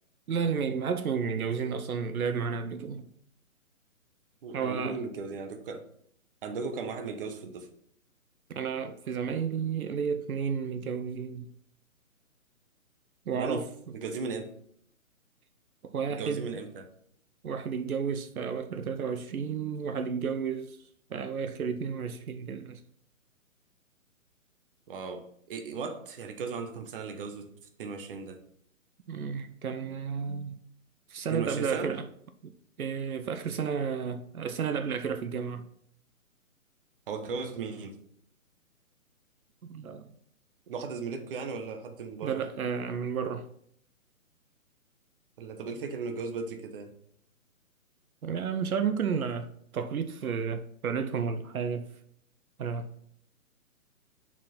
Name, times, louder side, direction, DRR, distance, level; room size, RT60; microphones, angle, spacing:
voice 1, 0.3-3.1 4.5-5.0 8.5-11.5 13.3-13.7 15.8-16.5 17.4-20.8 21.1-22.8 29.1-30.6 31.1-32.1 32.4-32.5 32.8-35.6 39.7-40.1 42.2-43.5 48.2-51.9 52.6-52.9, right 6 dB, 80° right, 0.7 m, -32 dB
voice 2, 4.4-5.9 6.4-7.7 13.4-13.6 13.9-14.5 16.1-16.9 24.9-27.5 27.8-28.4 31.3-31.9 37.1-38.0 40.7-42.4 45.4-46.9, right 4 dB, 40° right, 0.9 m, -36 dB
5.8 x 4.6 x 4.2 m
hypercardioid pair, 150°, 43 cm